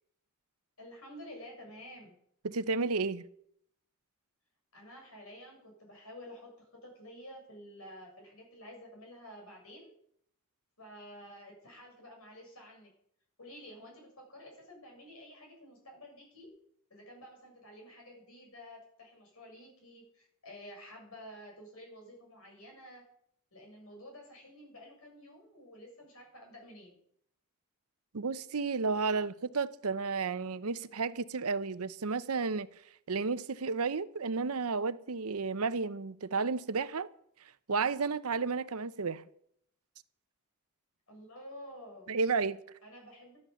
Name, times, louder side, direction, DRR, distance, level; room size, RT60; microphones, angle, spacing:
voice 1, 0.8-2.2 4.7-9.9 10.8-12.9 13.4-16.5 16.9-23.0 23.5-26.9 41.1-42.1 42.8-43.4, equal, 75° left, 7.4 m, -51 dB
voice 2, 2.4-3.2 28.1-32.7 33.1-37.1 37.7-39.2 42.1-42.6, right 4 dB, 90° right, 0.8 m, -32 dB
13.0 x 11.5 x 7.1 m
head